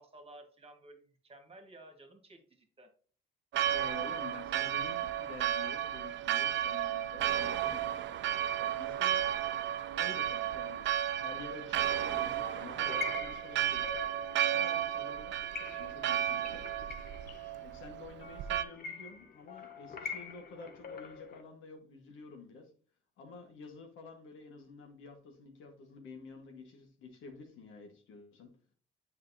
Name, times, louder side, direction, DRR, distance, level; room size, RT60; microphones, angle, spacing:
voice 1, 0.0-2.9, right 1 dB, 30° right, 1.6 m, -54 dB
Church bell, 3.5-18.6, right 11 dB, 65° right, 0.5 m, -33 dB
voice 2, 3.7-7.9 8.6-9.4 9.7-10.9 11.2-13.9 14.5-15.4 15.8-16.7 17.6-22.7 23.2-28.5, left 3 dB, 80° left, 1.5 m, -49 dB
sound 1, 11.7-21.4, left 5 dB, 50° left, 0.9 m, -46 dB
7.6 x 5.3 x 2.7 m
cardioid pair, 90°, 20 cm